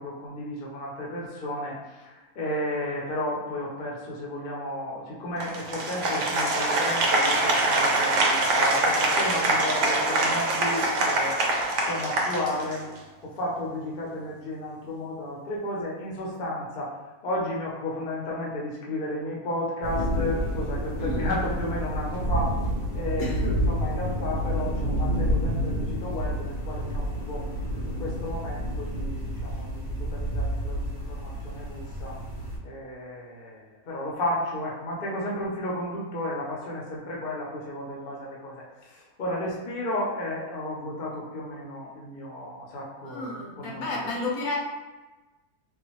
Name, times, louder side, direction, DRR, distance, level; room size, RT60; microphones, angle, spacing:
voice 1, 0.0-11.4 11.8-12.8 13.2-17.0 17.2-22.6 22.9-27.5 27.8-32.2 32.6-44.0, left 1 dB, 45° left, -4 dB, 0.7 m, -33 dB
Applause, 5.4-13.0, right 2 dB, 65° right, 0.8 m, -24 dB
sound 1, 19.8-32.6, equal, 35° right, 0.6 m, -29 dB
voice 2, 23.2-23.5 43.0-44.6, left 2 dB, 70° left, -2 dB, 1.1 m, -31 dB
3.6 x 2.3 x 3.0 m, 1.2 s
omnidirectional pair, 1.6 m